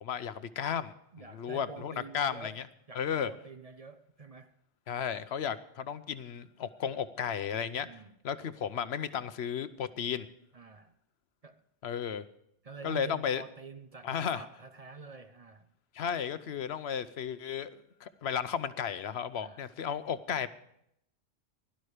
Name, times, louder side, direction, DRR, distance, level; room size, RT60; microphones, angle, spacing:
voice 1, 0.0-0.9 1.3-2.6 3.0-3.3 4.9-7.9 8.2-10.3 11.8-12.2 12.8-13.4 14.0-14.4 15.9-20.5, left 8 dB, 75° left, 1.0 m, -34 dB
voice 2, 1.1-4.5 7.9-8.2 10.5-10.9 11.4-11.6 12.6-15.7 19.4-19.7, right 4 dB, 40° right, 0.7 m, -47 dB
16.5 x 11.5 x 4.9 m
omnidirectional pair, 1.1 m